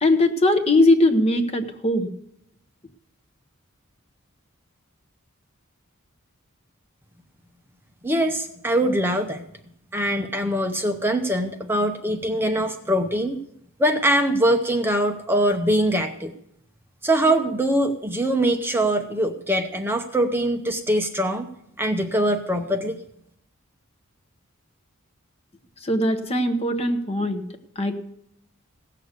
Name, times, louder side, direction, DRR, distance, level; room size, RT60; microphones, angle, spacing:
voice 1, 0.0-2.1 25.8-27.4 27.8-28.0, left 1 dB, 30° left, 6 dB, 1.0 m, -20 dB
voice 2, 8.0-9.4 9.9-13.4 13.8-16.3 17.0-21.5 21.8-23.0, right 1 dB, 10° right, 5 dB, 0.8 m, -22 dB
17.0 x 6.7 x 8.1 m, 0.74 s
head